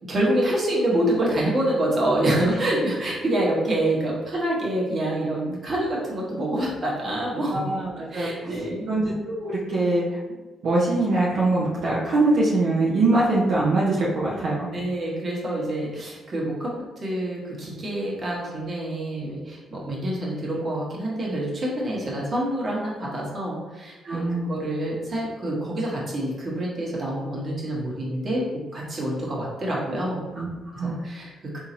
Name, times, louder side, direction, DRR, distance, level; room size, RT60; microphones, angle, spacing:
voice 1, 0.0-7.7 8.1-9.0 14.7-28.4 28.7-30.3 30.8-31.6, right 1 dB, 40° right, -4 dB, 1.3 m, -27 dB
voice 2, 7.5-8.3 8.9-9.1 9.4-10.2 10.6-14.7 24.0-24.5 30.4-31.0, right 2 dB, 75° right, -6 dB, 0.7 m, -23 dB
3.8 x 2.8 x 2.9 m, 1.2 s
cardioid pair, 90°, 0 cm